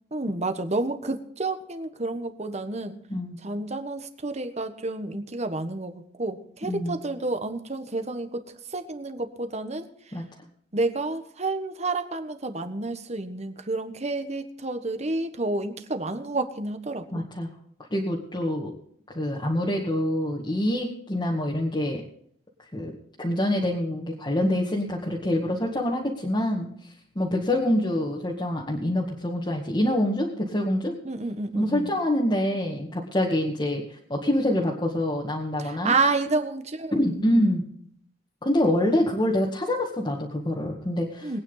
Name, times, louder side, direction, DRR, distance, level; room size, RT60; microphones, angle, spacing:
voice 1, 0.1-3.0 3.4-8.4 8.7-9.9 10.7-17.2 31.0-31.9 35.6-37.5 41.2-41.4, right 3 dB, 40° right, 8 dB, 1.5 m, -30 dB
voice 2, 6.6-7.0 10.1-10.2 17.1-17.5 17.9-18.7 19.1-22.0 22.7-22.9 23.2-26.7 27.2-31.0 31.6-35.9 36.9-37.6 38.4-41.4, left 1 dB, 25° left, -3 dB, 2.0 m, -26 dB
21.5 x 9.4 x 4.0 m, 0.65 s
head